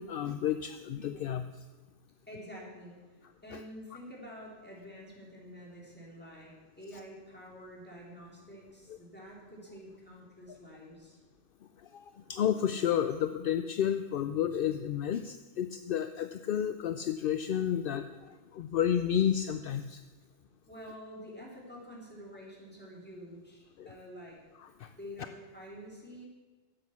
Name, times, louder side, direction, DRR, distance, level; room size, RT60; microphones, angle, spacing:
voice 1, 0.0-1.5 3.5-3.6 10.5-10.6 11.9-12.0 12.3-20.0 23.8-23.9 24.8-24.9, left 9 dB, 65° left, 10 dB, 0.6 m, -31 dB
voice 2, 2.3-3.0 3.4-11.2 20.7-24.4 25.0-26.3, equal, 10° left, -4 dB, 3.2 m, -48 dB
12.5 x 8.1 x 7.2 m, 1.3 s
omnidirectional pair, 1.3 m